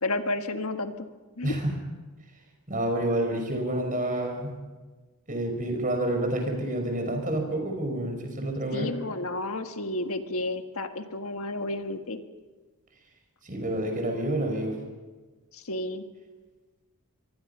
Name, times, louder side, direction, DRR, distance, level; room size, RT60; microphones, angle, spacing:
voice 1, 0.0-1.1 1.4-1.6 8.7-12.2 15.5-16.1, left 2 dB, 70° left, 6 dB, 1.7 m, -31 dB
voice 2, 1.4-1.7 2.7-4.5 5.3-8.9 13.4-14.8, right 1 dB, 35° right, 4 dB, 5.6 m, -28 dB
26.5 x 23.0 x 5.8 m, 1.3 s
head